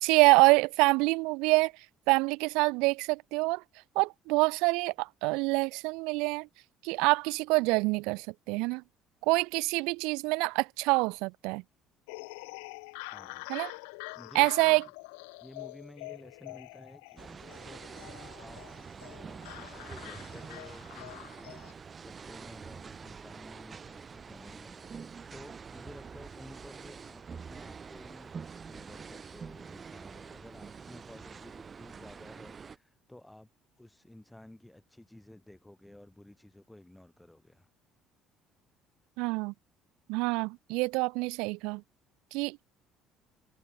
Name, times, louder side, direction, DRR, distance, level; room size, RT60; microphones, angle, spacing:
voice 1, 0.0-1.7 2.1-3.6 4.0-6.5 6.8-8.8 9.3-11.6 13.5-13.7 14.4-14.8 39.2-39.5 40.1-41.8 42.3-42.7, right 26 dB, 80° right, 0.4 m, -26 dB
sound 1, 12.1-21.7, left 32 dB, 85° left, 1.4 m, -45 dB
voice 2, 13.1-13.5 14.1-14.9 15.4-28.4 28.7-33.5 33.8-37.7, left 1 dB, 10° left, 5.3 m, -53 dB
sound 2, 17.2-32.8, right 6 dB, 35° right, 1.4 m, -46 dB
hypercardioid pair, 65°, 0 cm